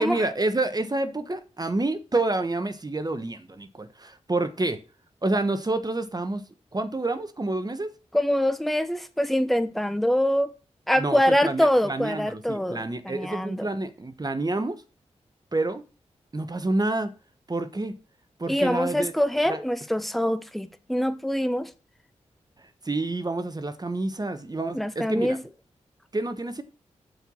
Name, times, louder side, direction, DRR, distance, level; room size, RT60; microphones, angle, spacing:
voice 1, 0.0-4.8 5.2-6.4 6.7-7.9 10.9-14.8 15.5-15.8 16.3-17.1 17.5-18.0 18.4-19.1 19.5-19.6 22.6-25.4 26.1-26.6, right 2 dB, 30° right, 1.2 m, -28 dB
voice 2, 8.1-10.5 10.9-13.7 18.5-21.7 24.7-25.4, equal, ahead, 1.0 m, -24 dB
7.9 x 4.8 x 7.1 m
cardioid pair, 40°, 12 cm